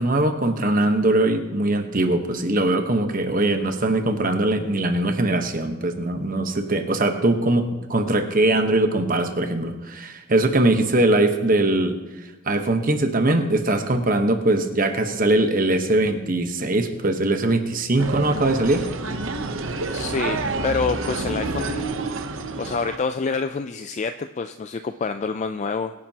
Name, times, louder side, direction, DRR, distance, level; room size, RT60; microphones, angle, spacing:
voice 1, 0.0-12.0 12.4-18.8, right 2 dB, 40° right, 6 dB, 1.1 m, -21 dB
sound 1, 18.0-23.0, right 3 dB, 65° right, 0.8 m, -28 dB
voice 2, 19.9-21.8 22.6-25.9, left 4 dB, 35° left, 9 dB, 0.3 m, -27 dB
23.0 x 10.5 x 2.9 m, 1.1 s
head